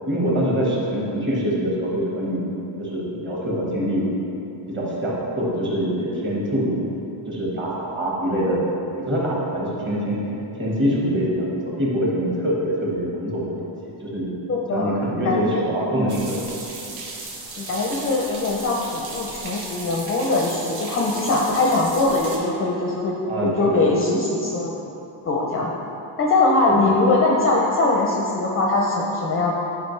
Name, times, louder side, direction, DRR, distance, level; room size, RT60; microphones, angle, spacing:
voice 1, 0.1-2.4 2.8-4.1 4.7-6.7 7.3-8.7 9.1-10.2 10.6-13.6 13.9-14.3 14.7-16.4 23.2-23.9 26.7-26.8, equal, 25° right, -5 dB, 1.4 m, -24 dB
voice 2, 14.5-15.7 17.6-23.2 23.4-24.7 25.2-25.7 26.2-29.5, left 2 dB, 30° left, -2 dB, 0.5 m, -21 dB
sound 1, 16.1-22.4, right 3 dB, 75° right, 1.4 m, -35 dB
10.0 x 5.0 x 3.2 m, 2.9 s
cardioid pair, 175°, 46 cm